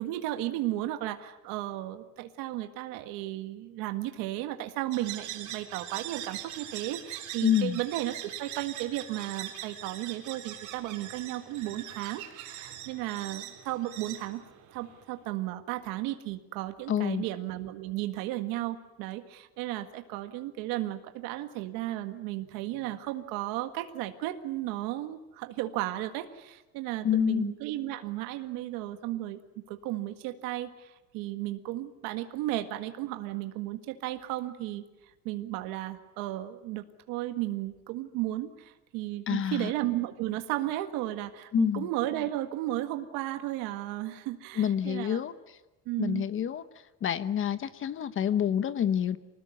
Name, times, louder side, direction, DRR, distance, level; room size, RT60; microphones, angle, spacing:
voice 1, 0.0-14.4 14.7-29.4 29.7-34.9 35.3-45.2 45.9-46.2, right 15 dB, 85° right, 8 dB, 1.8 m, -34 dB
sound 1, 4.9-15.1, right 11 dB, 60° right, 3.6 m, -42 dB
voice 2, 7.4-7.8 16.9-17.2 27.0-27.5 39.3-39.7 41.5-41.9 44.6-45.3 46.0-46.6 47.0-49.2, left 10 dB, 40° left, 13 dB, 1.1 m, -27 dB
25.5 x 19.5 x 9.5 m, 1.0 s
cardioid pair, 140°, 34 cm